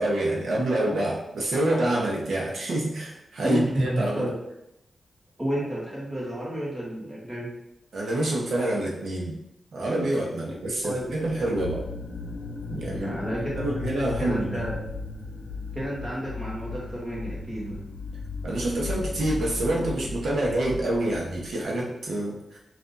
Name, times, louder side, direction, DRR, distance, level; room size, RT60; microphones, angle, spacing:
voice 1, 0.0-4.3 7.9-9.4 9.7-11.8 12.7-13.2 13.6-14.7 18.4-22.6, right 1 dB, 75° right, -2 dB, 1.0 m, -27 dB
voice 2, 3.4-4.3 5.4-7.5 10.5-10.6 10.8-11.1 13.0-13.9 14.2-14.8 15.7-17.8, right 1 dB, 10° right, -6 dB, 1.3 m, -30 dB
sound 1, 11.0-21.5, left 3 dB, 70° left, 0.7 m, -36 dB
5.8 x 2.6 x 2.6 m, 0.85 s
wide cardioid pair, 175°, 0 cm